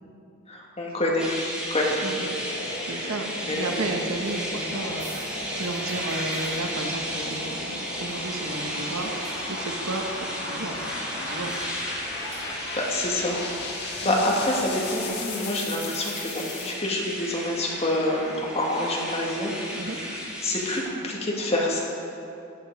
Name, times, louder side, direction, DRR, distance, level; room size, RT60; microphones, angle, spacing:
voice 1, 0.5-2.0 2.9-3.1 3.5-3.7 12.8-13.4 14.0-19.5 19.9-21.8, left 1 dB, 30° left, -3 dB, 1.9 m, -27 dB
sound 1, 1.2-20.8, equal, 5° right, 1.7 m, -35 dB
voice 2, 2.0-2.3 2.7-10.8 11.1-11.6 14.0-14.2 19.7-20.0, right 2 dB, 80° right, 3 dB, 1.2 m, -33 dB
sound 2, 2.2-16.7, left 3 dB, 50° left, 1.5 m, -37 dB
sound 3, 3.3-15.0, right 1 dB, 35° right, 1.8 m, -43 dB
14.5 x 9.0 x 4.7 m, 2.6 s
head